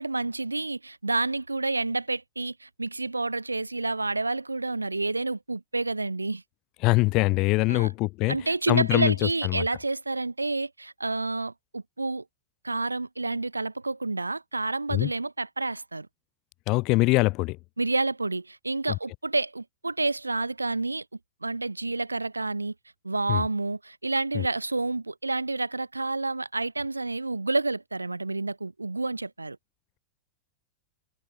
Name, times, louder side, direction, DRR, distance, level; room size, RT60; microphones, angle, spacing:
voice 1, 0.0-6.4 7.7-7.9 8.3-12.2 12.6-16.1 17.8-21.0 21.4-22.7 23.0-29.6, right 3 dB, 85° right, 1.4 m, -29 dB
voice 2, 6.8-8.4 8.7-9.1 9.4-9.6 14.9-15.1 16.7-17.6 23.3-23.5 24.3-24.4, left 23 dB, 45° left, 1.3 m, -23 dB
figure-of-eight pair, 90°, 0 cm